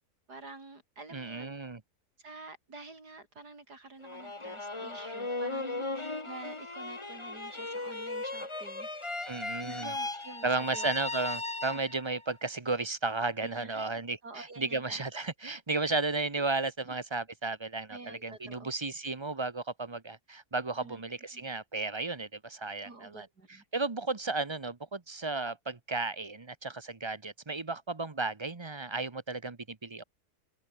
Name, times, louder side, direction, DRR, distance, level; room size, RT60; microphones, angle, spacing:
voice 1, 0.3-1.5 2.2-8.9 9.6-10.9 11.7-11.8 13.4-15.0 16.8-17.0 17.9-18.7 20.8-21.4 22.8-23.7, right 3 dB, 80° right, 5.3 m, -48 dB
voice 2, 1.1-1.8 9.3-9.9 10.4-23.3 23.7-30.0, right 3 dB, 20° right, 0.8 m, -34 dB
sound 1, 4.0-12.2, left 2 dB, 20° left, 1.6 m, -37 dB
open air
omnidirectional pair, 1.7 m